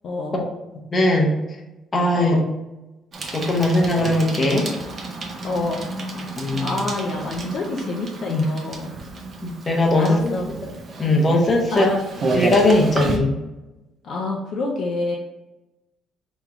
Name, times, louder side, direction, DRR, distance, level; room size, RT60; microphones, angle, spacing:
voice 1, 0.0-0.4 2.1-2.5 5.4-5.9 6.6-8.9 9.9-10.5 11.7-12.0 14.0-15.2, left 2 dB, 45° left, -1 dB, 0.5 m, -27 dB
voice 2, 0.9-1.3 1.9-2.4 3.3-4.7 6.4-6.8 8.3-8.5 9.4-10.3 11.0-11.9 12.3-13.3, left 1 dB, 20° left, -1 dB, 0.8 m, -19 dB
Bicycle, 3.1-13.2, right 2 dB, 30° right, 0.6 m, -31 dB
3.6 x 3.0 x 3.6 m, 1.0 s
cardioid pair, 170°, 0 cm